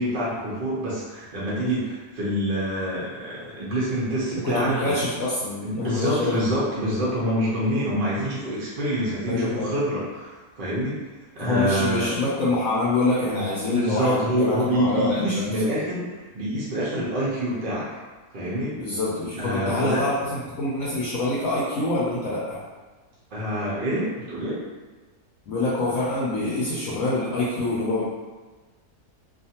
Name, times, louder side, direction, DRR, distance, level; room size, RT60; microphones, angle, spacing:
voice 1, 0.0-5.0 5.6-11.0 11.4-12.2 13.3-17.8 18.3-18.7 19.4-20.0 23.3-24.6, equal, 55° right, -7 dB, 0.6 m, -26 dB
voice 2, 4.4-6.4 9.2-9.7 11.4-15.5 18.8-22.6 25.5-28.0, left 2 dB, 70° left, -7 dB, 0.9 m, -25 dB
2.5 x 2.4 x 2.8 m, 1.3 s
omnidirectional pair, 1.6 m